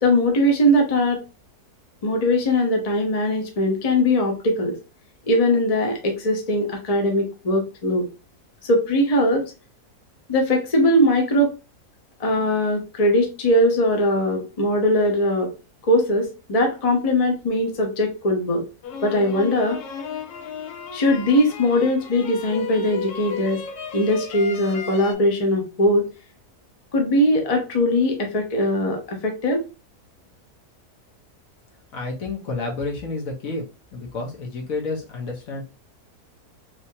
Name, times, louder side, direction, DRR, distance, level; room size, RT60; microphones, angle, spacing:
voice 1, 0.0-1.2 2.0-4.8 5.3-8.1 8.6-9.4 10.3-11.5 12.2-15.5 15.8-18.6 19.0-19.8 20.9-23.6 23.9-26.1 26.9-29.7, left 1 dB, 35° left, 2 dB, 0.6 m, -20 dB
sound 1, 18.8-25.1, left 6 dB, 80° left, 1.2 m, -34 dB
voice 2, 31.9-33.7 33.9-35.6, left 3 dB, 60° left, -1 dB, 1.4 m, -30 dB
3.4 x 3.0 x 2.7 m, 0.32 s
omnidirectional pair, 1.7 m